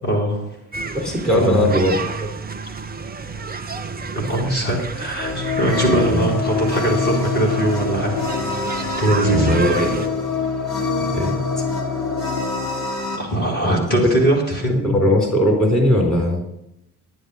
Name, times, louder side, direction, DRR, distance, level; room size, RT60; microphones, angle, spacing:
voice 1, 0.0-0.5 1.3-1.7 4.3-8.1 9.0-9.6 13.2-15.0, right 1 dB, 85° left, -4 dB, 3.0 m, -21 dB
sound 1, 0.7-10.1, right 4 dB, 20° right, 1.0 m, -31 dB
voice 2, 0.9-2.0 5.8-6.3 9.3-10.1 11.1-11.3 13.6-13.8 14.8-16.4, left 1 dB, ahead, -1 dB, 4.4 m, -19 dB
sound 2, 5.2-13.2, left 4 dB, 55° left, 3.3 m, -24 dB
10.0 x 10.0 x 5.3 m, 0.82 s
figure-of-eight pair, 50°, 46 cm